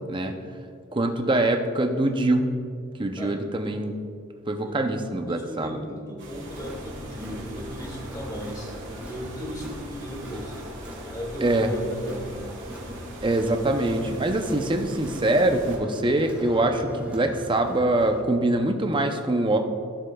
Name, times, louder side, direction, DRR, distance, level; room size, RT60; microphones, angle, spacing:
voice 1, 0.9-2.5 3.0-4.0 4.5-5.8 11.4-11.7 13.2-19.6, right 1 dB, 25° right, 5 dB, 0.6 m, -24 dB
voice 2, 5.3-10.5 11.1-12.5, equal, 20° left, -2 dB, 1.9 m, -36 dB
sound 1, 6.2-15.8, right 1 dB, 60° right, 1.9 m, -43 dB
Crowd, 6.5-18.2, equal, 5° right, 1.2 m, -41 dB
15.5 x 7.4 x 2.3 m, 2.3 s
head